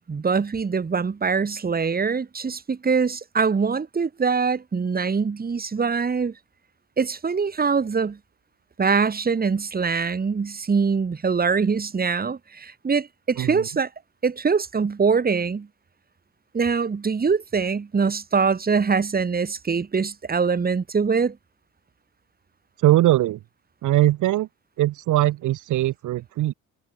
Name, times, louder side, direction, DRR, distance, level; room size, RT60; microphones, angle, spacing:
voice 1, 0.1-6.3 7.0-8.2 8.8-13.9 14.2-15.7 16.5-21.4, right 5 dB, 30° right, 2.1 m, -23 dB
voice 2, 13.4-13.7 22.8-23.4 23.8-24.5 24.8-26.5, right 15 dB, 80° right, 1.6 m, -21 dB
cardioid pair, 90°, 30 cm